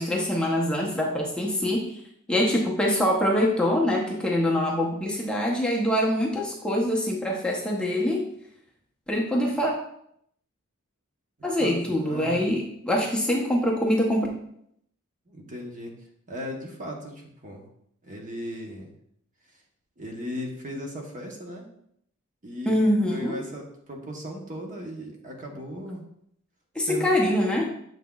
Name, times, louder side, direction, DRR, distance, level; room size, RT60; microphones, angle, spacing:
voice 1, 0.0-1.9 2.3-8.2 9.1-9.7 11.4-14.3 22.7-23.4 26.7-27.7, left 1 dB, 5° left, -3 dB, 0.8 m, -24 dB
voice 2, 11.6-12.5 15.3-15.9 16.3-17.7 18.0-18.9 20.0-21.6 22.4-26.0 26.8-27.1, equal, 35° right, 1 dB, 1.0 m, -37 dB
7.3 x 5.7 x 2.3 m, 0.71 s
head